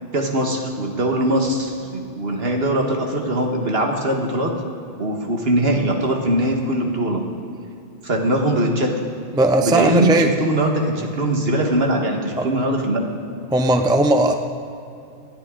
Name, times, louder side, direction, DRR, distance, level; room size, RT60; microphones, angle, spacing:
voice 1, 0.1-4.5 5.0-7.2 8.0-9.1 9.6-13.2, right 1 dB, 60° right, 2 dB, 1.8 m, -21 dB
voice 2, 9.3-10.3 12.4-12.5 13.5-14.3, right 2 dB, 5° right, 6 dB, 0.5 m, -17 dB
26.0 x 9.7 x 3.8 m, 2.5 s
omnidirectional pair, 1.2 m